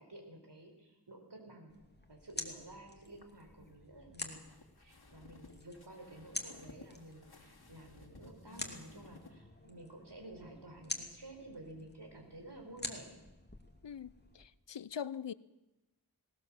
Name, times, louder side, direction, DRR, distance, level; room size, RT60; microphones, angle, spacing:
voice 1, 0.0-1.8 2.1-4.4 4.8-13.2, right 1 dB, 70° right, 3 dB, 4.7 m, -52 dB
sound 1, 1.7-14.5, left 2 dB, 25° left, 2.7 m, -48 dB
sound 2, 3.0-9.3, left 3 dB, 60° left, 2.7 m, -58 dB
voice 2, 13.8-15.3, left 8 dB, 90° left, 18 dB, 0.7 m, -42 dB
19.0 x 18.5 x 7.6 m, 1.0 s
wide cardioid pair, 45°, 42 cm